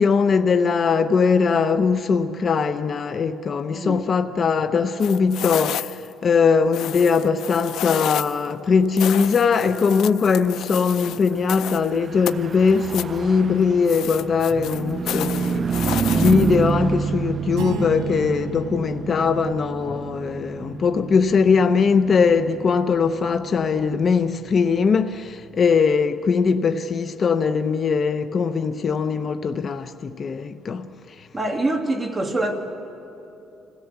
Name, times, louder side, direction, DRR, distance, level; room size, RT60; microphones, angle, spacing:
voice 1, 0.0-31.3, left 5 dB, 40° left, 0.7 m, -21 dB
voice 2, 3.7-4.0 31.3-32.5, right 2 dB, 15° right, 2.3 m, -24 dB
sound 1, 5.0-6.1 6.7-8.5 9.0-11.9 12.3-13.2 13.9-16.7, left 12 dB, 80° left, 0.5 m, -31 dB
Car passing by / Truck, 11.7-25.5, right 6 dB, 40° right, 0.4 m, -29 dB
sound 2, 17.5-20.4, right 7 dB, 85° right, 1.9 m, -35 dB
26.5 x 17.0 x 8.1 m
cardioid pair, 115°, 0 cm